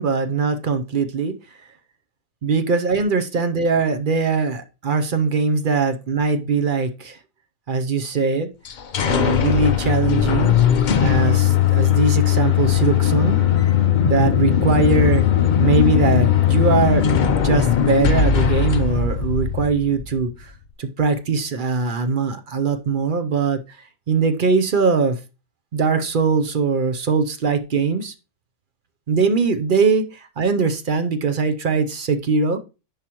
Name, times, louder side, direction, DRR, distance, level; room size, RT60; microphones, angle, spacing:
voice 1, 0.0-1.3 2.4-7.2 7.7-8.5 9.0-10.6 11.0-13.4 14.0-15.2 15.6-17.2 17.4-20.5 20.8-23.8 24.1-25.2 25.7-28.1 29.1-30.0 30.4-32.6, right 4 dB, 50° right, 8 dB, 0.6 m, -21 dB
sound 1, 8.7-20.3, left 9 dB, 65° left, 0.4 m, -18 dB
10.5 x 4.9 x 2.9 m, 0.30 s
omnidirectional pair, 1.6 m